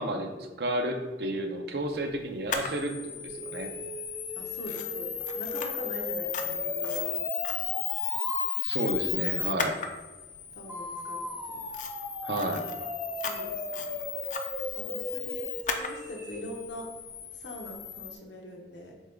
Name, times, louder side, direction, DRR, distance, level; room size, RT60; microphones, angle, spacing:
voice 1, 0.0-3.0 3.2-3.7 8.6-9.8 12.2-12.7, right 1 dB, 65° right, 4 dB, 0.6 m, -31 dB
Camera, 2.5-18.2, left 8 dB, 45° left, 0.4 m, -35 dB
sound 1, 3.3-8.5 10.7-16.5, equal, 10° right, 0.6 m, -38 dB
voice 2, 4.4-7.1 10.5-11.6 13.2-13.9 14.7-15.5 15.7-16.9 17.3-18.9, left 1 dB, 85° left, 1 dB, 0.8 m, -43 dB
6.3 x 2.3 x 3.7 m, 1.2 s
head